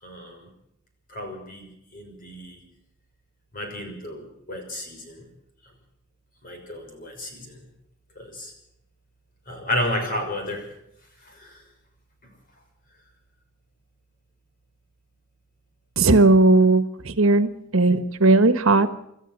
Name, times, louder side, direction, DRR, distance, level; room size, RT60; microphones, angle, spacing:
voice 1, 0.0-0.5 1.1-2.6 3.5-5.3 6.4-7.6 8.2-8.5 9.5-10.7 11.2-11.6, left 1 dB, 45° left, 4 dB, 6.1 m, -32 dB
voice 2, 16.0-18.9, right 2 dB, 75° right, 11 dB, 1.4 m, -17 dB
27.0 x 13.0 x 7.5 m, 0.81 s
head